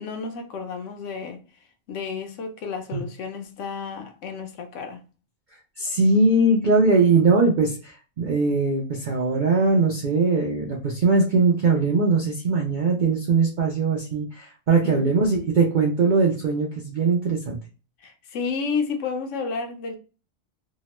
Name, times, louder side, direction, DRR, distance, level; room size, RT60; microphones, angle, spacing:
voice 1, 0.0-1.4 1.9-5.0 14.8-15.2 18.0-20.0, left 5 dB, 70° left, 0.9 m, -31 dB
voice 2, 5.8-17.6, right 3 dB, 65° right, 0.4 m, -21 dB
2.8 x 2.1 x 2.9 m
omnidirectional pair, 1.4 m